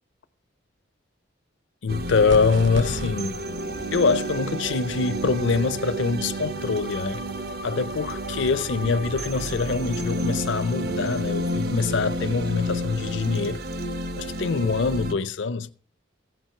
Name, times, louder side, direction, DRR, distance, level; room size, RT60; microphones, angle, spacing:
voice 1, 1.8-3.4 3.9-7.2 7.6-13.6 14.2-15.7, left 4 dB, 65° left, 0.5 m, -24 dB
sound 1, 1.9-15.1, right 1 dB, 50° right, 0.8 m, -30 dB
sound 2, 2.3-3.1, right 1 dB, 70° right, 1.6 m, -32 dB
15.5 x 6.0 x 5.6 m
head